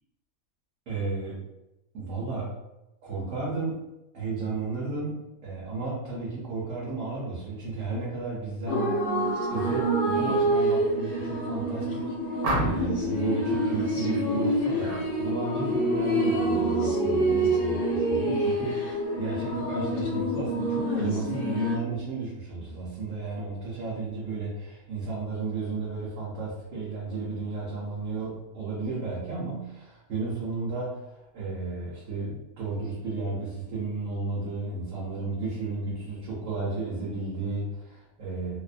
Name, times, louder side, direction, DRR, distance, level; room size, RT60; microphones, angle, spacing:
voice 1, 0.9-1.4 1.9-2.5 3.0-3.8 4.1-8.9 9.5-31.0 31.3-38.6, right 3 dB, 65° right, -7 dB, 1.0 m, -33 dB
sound 1, 8.7-21.8, right 1 dB, 70° left, 0.5 m, -27 dB
sound 2, 12.4-13.0 14.8-15.1 15.5-15.8, right 1 dB, 85° right, 1.1 m, -30 dB
2.7 x 2.0 x 2.4 m, 0.94 s
omnidirectional pair, 1.5 m